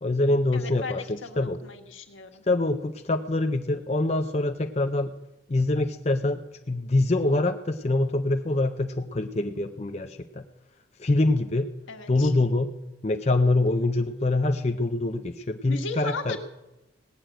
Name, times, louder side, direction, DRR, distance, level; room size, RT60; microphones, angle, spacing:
voice 1, 0.0-1.6 2.5-5.1 5.5-6.4 6.7-10.4 11.0-11.7 12.1-12.7 13.0-16.4, left 2 dB, 35° left, 6 dB, 0.5 m, -25 dB
voice 2, 0.5-2.4 11.9-12.3 15.6-16.4, left 3 dB, 90° left, 4 dB, 1.6 m, -36 dB
17.5 x 6.4 x 9.0 m, 0.97 s
head